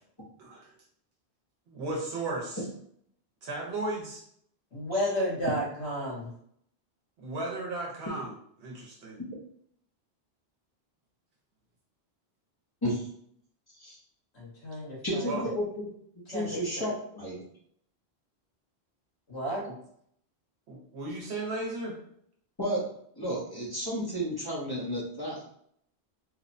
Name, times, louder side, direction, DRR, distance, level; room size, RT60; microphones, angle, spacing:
voice 1, 0.4-0.7 1.7-2.7 3.4-4.2 7.2-8.3 8.6-9.2 15.3-15.4 20.7-22.0, right 2 dB, 75° right, -2 dB, 0.9 m, -35 dB
voice 2, 4.7-6.3 14.3-15.4 16.3-16.5 19.3-19.6, equal, 75° left, -6 dB, 1.5 m, -32 dB
voice 3, 15.0-15.7 16.3-17.4 22.6-22.8 23.2-25.4, equal, 30° left, -4 dB, 0.5 m, -32 dB
3.0 x 2.0 x 2.5 m, 0.67 s
omnidirectional pair, 1.1 m